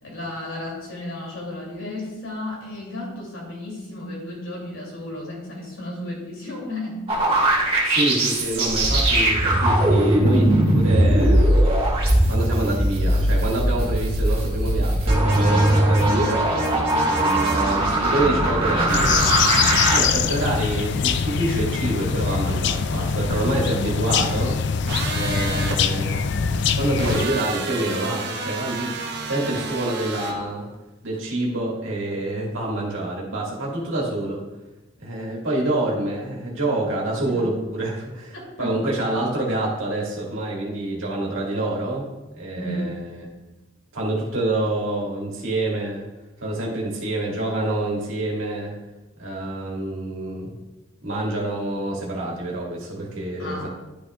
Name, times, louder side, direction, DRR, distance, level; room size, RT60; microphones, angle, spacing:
voice 1, 0.0-7.1 15.3-15.6 19.3-19.8 23.2-23.4 37.2-37.5 38.6-38.7 42.5-42.9 53.4-53.7, left 1 dB, 80° left, -3 dB, 2.8 m, -33 dB
sound 1, 7.1-20.0, right 1 dB, 30° right, 1.6 m, -19 dB
voice 2, 7.9-11.5 12.3-16.4 16.9-19.2 19.9-24.6 25.1-26.2 26.7-28.9 29.2-30.7 31.0-34.4 35.0-43.3 43.9-46.1 46.4-48.7 49.2-50.6 51.0-53.7, right 1 dB, 75° right, -3 dB, 1.9 m, -27 dB
sound 2, 18.9-27.3, left 6 dB, 55° left, 0.4 m, -23 dB
sound 3, 24.9-25.8 27.0-30.4, right 4 dB, 55° right, 0.9 m, -30 dB
11.5 x 6.2 x 2.4 m, 1.1 s
head